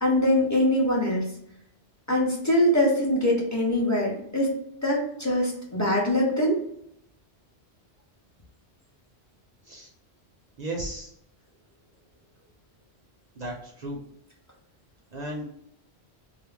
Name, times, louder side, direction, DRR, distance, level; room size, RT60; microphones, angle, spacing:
voice 1, 0.0-1.2 2.1-4.5 4.8-6.6, left 1 dB, 20° left, -3 dB, 0.5 m, -23 dB
voice 2, 10.6-11.1 13.4-14.0 15.1-15.5, right 1 dB, 55° right, -1 dB, 0.5 m, -34 dB
2.4 x 2.0 x 3.2 m, 0.75 s
omnidirectional pair, 1.1 m